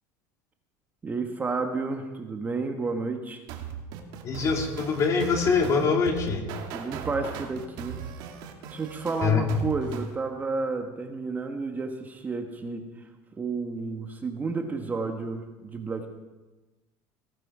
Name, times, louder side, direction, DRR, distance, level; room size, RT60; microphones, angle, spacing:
voice 1, 1.0-3.4 6.7-8.0 8.7-16.1, right 4 dB, 20° right, 4 dB, 1.3 m, -31 dB
sound 1, 3.5-10.1, right 8 dB, 65° right, 2.2 m, -38 dB
voice 2, 4.2-6.4 9.2-9.4, left 5 dB, 40° left, 2 dB, 2.9 m, -24 dB
18.0 x 12.0 x 4.9 m, 1.2 s
supercardioid pair, 130°, 9 cm